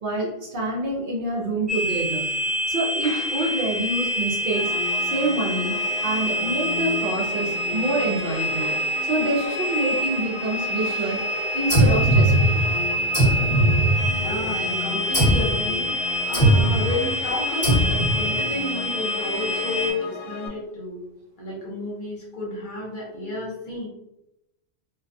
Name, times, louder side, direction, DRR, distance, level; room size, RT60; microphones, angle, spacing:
voice 1, 0.0-2.3 2.7-4.7 5.1-8.7 9.1-11.2 11.5-12.6, right 2 dB, 60° right, -3 dB, 0.7 m, -27 dB
sound 1, 1.7-19.9, equal, 35° right, 1.0 m, -27 dB
sound 2, 4.5-20.5, left 4 dB, 75° left, 0.8 m, -35 dB
sound 3, 11.7-12.7 13.1-14.4 15.1-15.6 16.3-16.9 17.6-18.3, right 1 dB, 20° left, 1.3 m, -19 dB
voice 2, 14.2-21.0 21.4-23.9, left 2 dB, 55° left, -4 dB, 0.9 m, -31 dB
2.2 x 2.2 x 2.6 m, 0.88 s
omnidirectional pair, 1.1 m